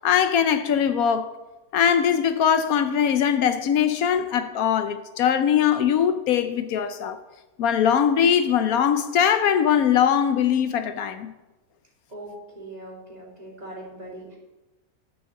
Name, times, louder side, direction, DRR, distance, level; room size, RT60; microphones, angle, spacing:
voice 1, 0.0-1.3 1.7-7.2 7.6-11.3, left 8 dB, 75° left, 1.1 m, -21 dB
voice 2, 12.1-14.4, right 1 dB, 25° right, 2.9 m, -40 dB
11.5 x 6.4 x 7.0 m
omnidirectional pair, 1.6 m